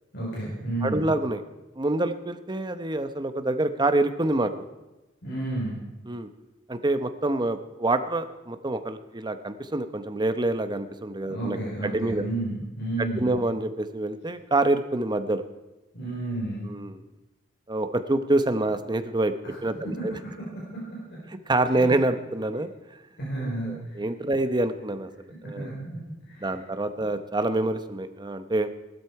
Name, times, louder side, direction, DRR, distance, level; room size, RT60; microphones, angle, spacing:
voice 1, 0.1-1.1 5.2-5.8 11.3-13.3 15.9-16.7 19.4-19.5 20.7-21.0 21.7-21.9 23.2-24.0 25.5-26.6 26.9-27.0, right 2 dB, 60° left, -6 dB, 4.8 m, -32 dB
voice 2, 0.8-1.4 1.8-4.5 6.1-6.3 6.7-12.2 13.0-15.4 16.7-17.0 17.7-19.3 19.6-20.1 21.5-22.7 23.6-25.1 25.4-25.7 26.4-28.7, right 2 dB, 20° right, 9 dB, 0.9 m, -26 dB
18.5 x 12.5 x 4.8 m, 1.0 s
head